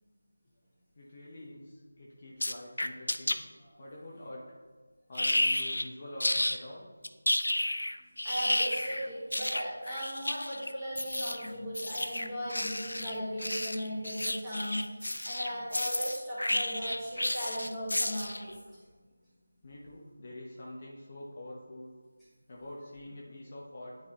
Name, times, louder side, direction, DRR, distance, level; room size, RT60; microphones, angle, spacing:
voice 1, 0.9-3.4 3.8-4.6 5.1-6.9 19.6-21.9 22.5-24.0, left 1 dB, 35° left, -4 dB, 0.9 m, -45 dB
sound 1, 2.4-3.3 5.1-5.9 6.2-6.6 7.0-18.5, left 1 dB, 85° left, 0.4 m, -31 dB
voice 2, 8.2-18.8, equal, 5° right, -15 dB, 2.0 m, -37 dB
10.0 x 3.9 x 3.0 m, 1.4 s
figure-of-eight pair, 170°, 0 cm